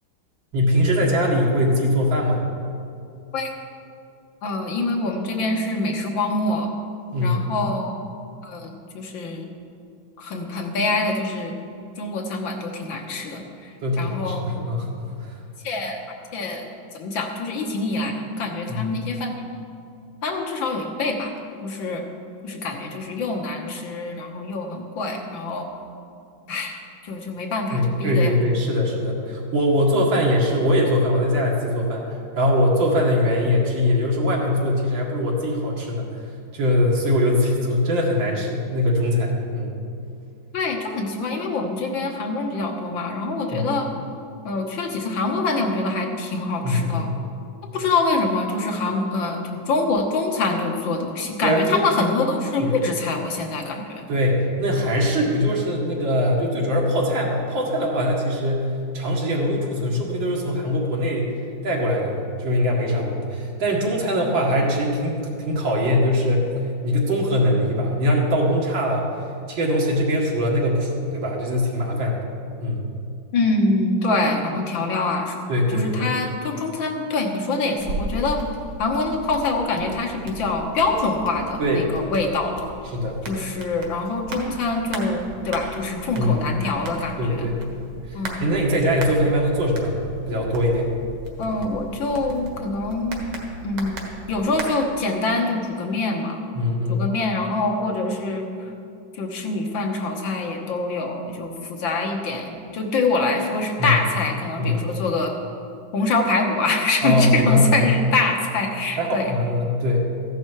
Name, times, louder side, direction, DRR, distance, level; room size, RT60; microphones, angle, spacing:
voice 1, 0.5-2.4 7.1-7.5 13.8-15.3 18.7-19.0 27.7-36.2 36.5-39.7 43.5-43.7 46.6-47.1 51.4-52.0 52.6-52.8 54.1-61.3 61.6-66.5 66.8-69.1 69.5-72.2 72.6-72.8 75.5-76.1 81.6-82.0 82.9-83.2 86.2-86.5 87.2-87.6 88.1-90.0 90.3-90.9 96.5-97.0 103.8-103.9 104.6-104.8 107.0-107.9 109.0-110.0, left 1 dB, 70° right, -2 dB, 2.6 m, -22 dB
voice 2, 4.4-6.7 7.2-8.0 8.4-9.5 10.2-11.6 12.0-14.4 15.6-16.0 16.3-16.7 16.9-19.4 20.2-21.3 21.6-22.0 22.4-25.7 26.5-28.3 40.5-43.9 44.5-47.1 47.7-54.1 73.3-75.4 75.7-78.4 78.8-82.7 83.3-87.5 88.1-88.4 91.4-93.3 93.6-94.0 94.3-96.4 96.9-98.5 99.1-105.3 105.9-109.4, left 3 dB, 75° left, 2 dB, 2.0 m, -25 dB
sound 1, 77.8-94.7, right 2 dB, 85° right, 2.4 m, -37 dB
14.5 x 10.5 x 4.6 m, 2.5 s
omnidirectional pair, 2.2 m